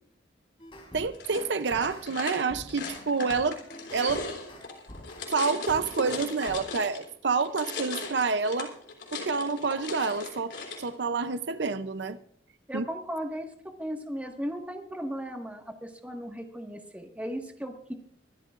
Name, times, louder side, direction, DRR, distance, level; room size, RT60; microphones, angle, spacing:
sound 1, 0.6-2.1 2.5-5.3 5.7-6.6, left 1 dB, 30° left, 3.6 m, -47 dB
voice 1, 0.9-3.6 3.9-4.2 5.3-8.7 9.1-12.2 12.7-12.8, right 4 dB, 75° right, 0.6 m, -28 dB
sound 2, 1.1-7.1 7.4-10.9, left 3 dB, 75° left, 3.5 m, -38 dB
voice 2, 12.7-13.5 13.8-17.9, equal, 10° right, 1.7 m, -36 dB
24.0 x 13.0 x 2.5 m
head